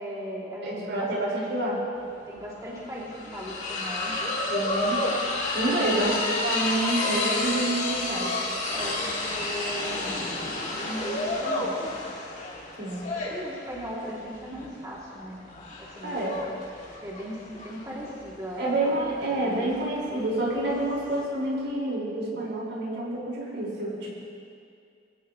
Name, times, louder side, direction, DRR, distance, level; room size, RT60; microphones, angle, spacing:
voice 1, 0.0-1.4 2.3-4.2 5.7-6.1 8.7-10.2 10.7-11.8 13.1-15.4 15.8-16.3 17.0-19.7, equal, 20° right, -7 dB, 2.8 m, -38 dB
voice 2, 0.6-1.8 4.5-5.0 5.5-8.3 12.8-13.0 16.0-16.4 18.6-24.2, right 1 dB, 85° right, -5 dB, 5.0 m, -28 dB
sound 1, 2.0-2.1 2.3-21.2, left 2 dB, 40° left, 2.2 m, -31 dB
23.0 x 16.0 x 3.1 m, 2.4 s
head